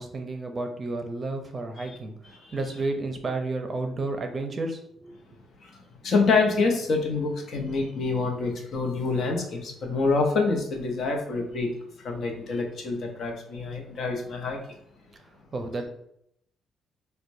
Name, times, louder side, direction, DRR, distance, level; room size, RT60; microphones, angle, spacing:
voice 1, 0.0-5.2 15.5-15.9, right 2 dB, 35° right, 0.5 m, -32 dB
voice 2, 5.6-11.7 12.0-14.6, left 3 dB, 65° left, 0.8 m, -26 dB
4.3 x 2.2 x 2.6 m
cardioid pair, 90°, 0 cm